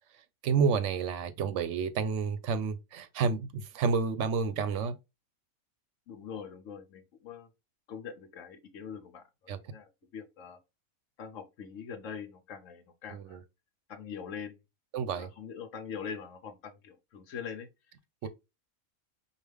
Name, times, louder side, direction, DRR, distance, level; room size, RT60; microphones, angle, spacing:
voice 1, 0.4-5.0 9.5-9.6 13.1-13.4 14.9-15.3 18.2-18.3, right 5 dB, 65° right, 0.8 m, -30 dB
voice 2, 6.1-7.5 7.9-9.2 9.7-10.6 11.2-13.4 13.9-14.6 15.2-17.7 18.2-18.3, left 7 dB, 65° left, 1.1 m, -43 dB
4.9 x 2.3 x 3.4 m
omnidirectional pair, 1.5 m